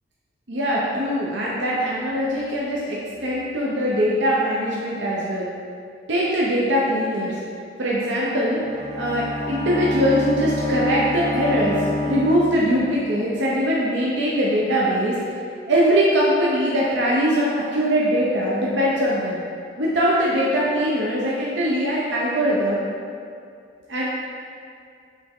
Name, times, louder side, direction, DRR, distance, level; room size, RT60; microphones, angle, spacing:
voice 1, 0.5-5.5 6.1-7.3 7.8-8.6 9.0-11.8 12.0-15.1 15.7-19.4 19.8-22.8 23.9-24.1, equal, 80° right, -6 dB, 0.8 m, -21 dB
Bowed string instrument, 8.4-13.1, left 1 dB, 35° right, 0.9 m, -28 dB
7.4 x 3.5 x 3.6 m, 2.4 s
head